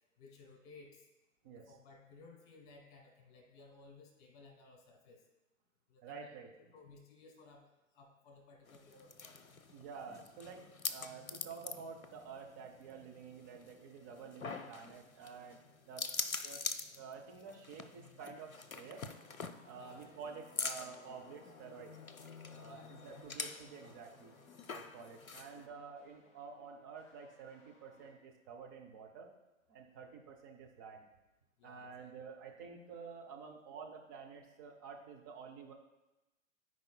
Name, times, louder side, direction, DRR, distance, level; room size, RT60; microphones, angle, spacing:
voice 1, 0.2-1.1 1.5-5.2 5.9-6.4 6.7-7.7 7.9-9.4 19.8-20.1 22.5-23.6 31.6-32.1, left 3 dB, 35° left, 1 dB, 2.2 m, -59 dB
voice 2, 6.0-6.7 9.7-15.6 15.9-16.1 16.4-19.1 19.6-22.0 22.5-24.3 24.7-29.3 29.7-31.0 31.6-35.7, right 5 dB, 15° right, 1 dB, 0.4 m, -50 dB
sound 1, 8.7-25.7, left 4 dB, 80° left, 0.6 m, -45 dB
sound 2, 18.9-28.1, left 1 dB, 15° left, 2.1 m, -67 dB
13.5 x 4.8 x 2.2 m, 1.0 s
figure-of-eight pair, 110°, 40 cm